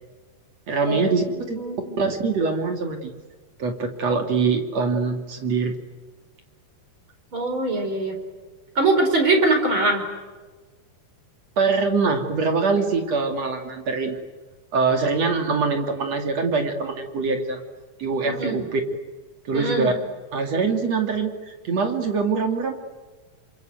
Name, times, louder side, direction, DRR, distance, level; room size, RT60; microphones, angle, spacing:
voice 1, 0.7-1.6 2.0-3.1 3.6-5.8 11.6-14.2 14.7-17.6 18.0-18.8 19.5-19.9 20.3-22.7, right 4 dB, 50° right, 4 dB, 3.5 m, -23 dB
voice 2, 1.4-1.9 7.3-8.1 8.7-10.0 18.2-18.6 19.5-19.9, right 2 dB, 35° right, 4 dB, 5.0 m, -22 dB
28.0 x 26.0 x 8.0 m, 1.3 s
omnidirectional pair, 3.9 m